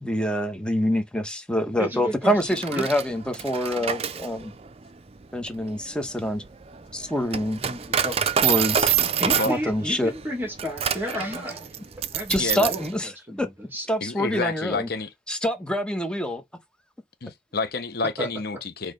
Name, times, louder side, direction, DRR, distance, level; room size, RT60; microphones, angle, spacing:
voice 1, 0.0-4.5 5.3-6.4 6.9-7.6 8.4-8.9 9.5-10.1 12.3-13.1 13.4-13.5 13.9-14.9 15.3-16.4, equal, 5° left, 1.2 m, -26 dB
voice 2, 1.8-2.9 7.7-8.2 9.0-11.7 12.1-13.9 18.2-18.3, equal, 10° right, 2.2 m, -33 dB
Coin (dropping), 2.4-12.9, right 8 dB, 35° right, 0.5 m, -27 dB
voice 3, 12.4-12.7 14.0-15.1 17.2-18.9, left 3 dB, 55° left, 0.9 m, -29 dB
6.0 x 3.1 x 5.1 m
head